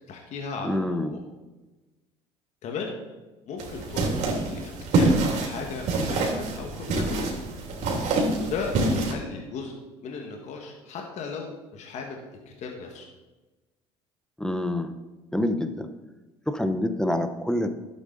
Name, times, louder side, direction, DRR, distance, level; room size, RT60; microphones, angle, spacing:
voice 1, 0.1-1.2 2.6-3.0 3.5-5.1 5.4-7.2 8.4-9.7 10.0-12.2 12.5-13.1, left 5 dB, 55° left, 1 dB, 1.8 m, -36 dB
voice 2, 0.6-1.2 14.4-14.9 15.3-15.9 16.5-17.7, left 1 dB, 5° left, 8 dB, 1.0 m, -26 dB
sound 1, 3.6-9.1, right 2 dB, 60° right, 3.1 m, -26 dB
11.5 x 8.3 x 4.0 m, 1.1 s
supercardioid pair, 80°, 14 cm